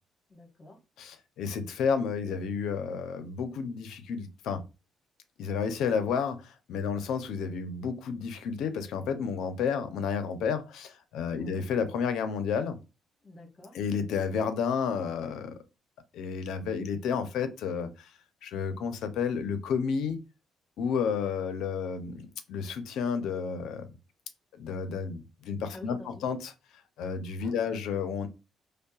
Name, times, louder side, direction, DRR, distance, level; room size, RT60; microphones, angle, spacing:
voice 1, 0.3-0.8 11.4-11.6 13.2-13.8 25.7-26.3 27.4-27.7, left 1 dB, 35° left, 1.5 m, -49 dB
voice 2, 1.0-4.6 5.4-12.8 13.7-15.5 16.1-18.1 18.4-20.2 20.8-23.9 24.6-26.5 27.0-28.3, left 6 dB, 80° left, 0.6 m, -31 dB
5.3 x 2.2 x 2.3 m
cardioid pair, 90°, 0 cm